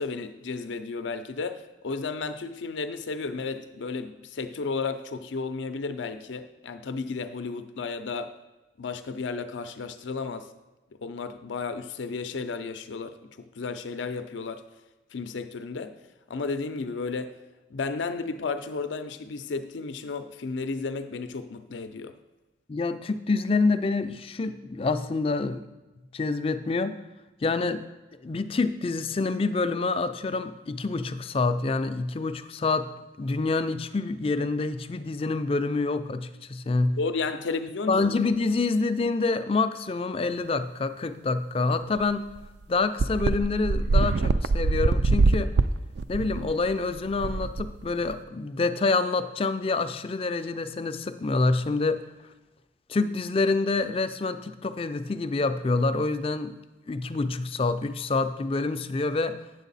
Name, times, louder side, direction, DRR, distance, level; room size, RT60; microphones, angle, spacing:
voice 1, 0.0-8.4 8.8-10.5 11.0-14.6 15.1-16.0 16.3-17.3 17.7-22.1 37.0-38.1, left 4 dB, 85° left, 10 dB, 0.5 m, -33 dB
voice 2, 22.7-25.6 26.1-27.0 27.4-27.8 28.2-32.9 33.2-37.0 37.9-42.3 42.7-45.5 46.1-52.0 52.9-56.5 56.9-59.4, left 3 dB, 30° left, 11 dB, 0.4 m, -27 dB
sound 1, 42.0-42.1 42.4-42.5 43.0-48.2, right 3 dB, 65° right, 0.3 m, -24 dB
9.0 x 7.2 x 4.0 m, 1.1 s
head